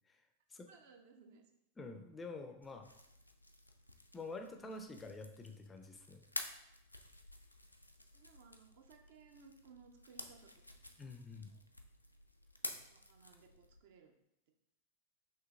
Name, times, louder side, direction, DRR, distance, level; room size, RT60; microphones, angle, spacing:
voice 1, 0.7-1.4 8.1-11.0 11.5-11.6 12.7-14.1, right 5 dB, 55° right, 4 dB, 0.5 m, -62 dB
voice 2, 1.8-2.9 4.1-6.2 11.0-11.5, left 3 dB, 15° left, 6 dB, 0.4 m, -48 dB
sound 1, 2.6-13.8, left 1 dB, 90° left, 0.3 m, -51 dB
5.7 x 2.8 x 2.4 m, 0.82 s
figure-of-eight pair, 90°, 0 cm